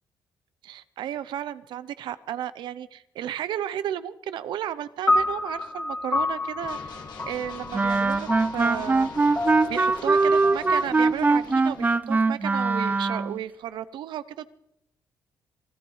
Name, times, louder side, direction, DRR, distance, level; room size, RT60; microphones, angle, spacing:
voice 1, 0.6-7.0 7.2-9.1 9.7-14.5, right 11 dB, 85° right, 15 dB, 0.7 m, -33 dB
sound 1, 5.1-11.5, left 2 dB, 30° left, 2.6 m, -30 dB
sound 2, 6.6-12.0, left 5 dB, 70° left, 2.2 m, -43 dB
Wind instrument woodwind instrument, 7.7-13.4, right 3 dB, 20° right, 0.5 m, -22 dB
25.5 x 16.0 x 3.2 m, 0.82 s
cardioid pair, 85°, 8 cm